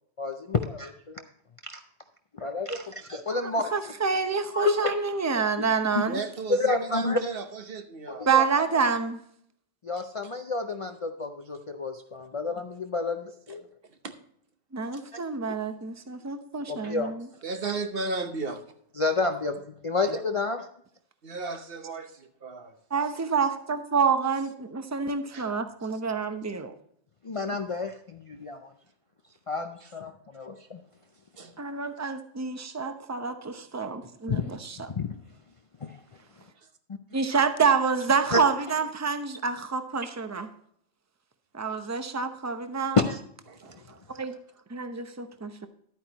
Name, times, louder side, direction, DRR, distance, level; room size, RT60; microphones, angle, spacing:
voice 1, 0.2-1.2 1.6-1.8 2.4-3.7 4.5-5.0 5.9-6.0 6.5-7.2 8.1-8.4 9.8-13.6 16.7-17.1 19.0-19.6 19.8-20.6 27.2-28.7 29.5-30.8 34.3-34.6 34.9-35.1 35.8-36.0 38.3-38.4 42.9-43.2, left 3 dB, 40° left, 6 dB, 0.5 m, -29 dB
voice 2, 3.4-6.2 8.3-9.2 14.7-17.3 22.9-26.7 31.6-34.9 37.1-40.5 41.5-43.0 43.9-44.3 44.7-45.7, right 5 dB, 15° right, 8 dB, 0.6 m, -28 dB
voice 3, 6.1-8.3 13.5-13.6 14.0-14.1 14.9-15.0 17.4-18.6 21.2-22.8 25.3-25.5 29.8-29.9 31.4-31.5 43.5-43.8, right 3 dB, 55° right, 7 dB, 1.1 m, -35 dB
12.0 x 9.0 x 2.9 m, 0.66 s
omnidirectional pair, 1.2 m